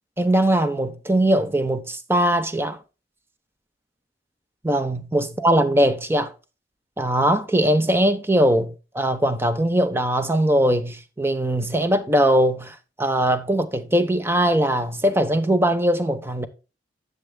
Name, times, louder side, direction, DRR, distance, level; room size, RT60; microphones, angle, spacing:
voice 1, 0.2-2.8 4.6-6.3 7.0-16.5, right 1 dB, 15° right, 0.9 m, -21 dB
11.5 x 7.0 x 2.2 m
head